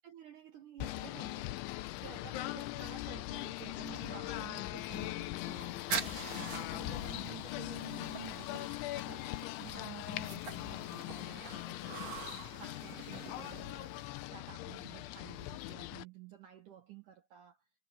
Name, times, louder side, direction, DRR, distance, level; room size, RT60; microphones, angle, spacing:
voice 1, 0.0-1.6 2.0-5.9 6.4-12.2 12.6-14.0 14.3-17.7, right 11 dB, 70° right, 2.0 m, -52 dB
Singing / Bird, 0.8-16.0, left 17 dB, 90° left, 3.3 m, -41 dB
sound 1, 5.4-14.1, right 6 dB, 40° right, 3.5 m, -45 dB
omnidirectional pair, 5.2 m